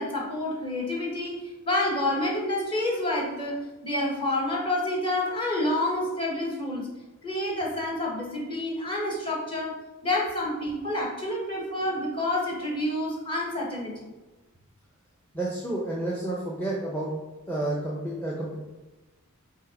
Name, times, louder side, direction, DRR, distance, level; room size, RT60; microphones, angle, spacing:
voice 1, 0.0-6.9 7.2-9.8 10.0-14.1, left 1 dB, 25° left, -3 dB, 1.4 m, -28 dB
voice 2, 15.3-17.1 17.5-18.6, right 1 dB, 10° left, -5 dB, 0.8 m, -30 dB
5.4 x 3.5 x 5.0 m, 1.2 s
head